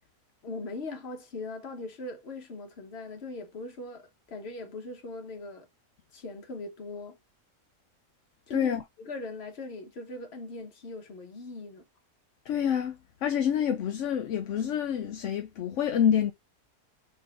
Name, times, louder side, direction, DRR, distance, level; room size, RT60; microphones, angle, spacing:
voice 1, 0.4-5.7 6.1-7.2 8.5-11.8, left 2 dB, 50° left, 1.2 m, -40 dB
voice 2, 8.5-8.8 12.5-16.3, left 8 dB, 70° left, 0.8 m, -27 dB
3.8 x 2.7 x 4.8 m
omnidirectional pair, 1.5 m